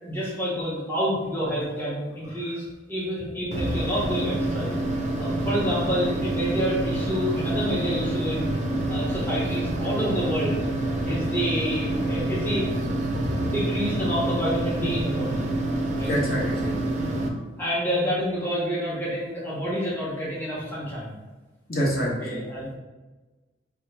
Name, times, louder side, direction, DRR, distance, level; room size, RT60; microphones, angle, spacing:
voice 1, 0.0-4.7 5.2-8.6 8.9-10.7 11.0-12.7 13.2-15.4 15.9-16.1 17.6-21.2 22.2-22.7, equal, 10° left, -8 dB, 0.9 m, -28 dB
sound 1, 3.5-17.3, right 1 dB, 40° right, 0.4 m, -27 dB
voice 2, 13.1-13.4 16.0-16.7 21.7-22.4, equal, 55° left, -5 dB, 1.2 m, -27 dB
4.8 x 2.3 x 3.3 m, 1.2 s
head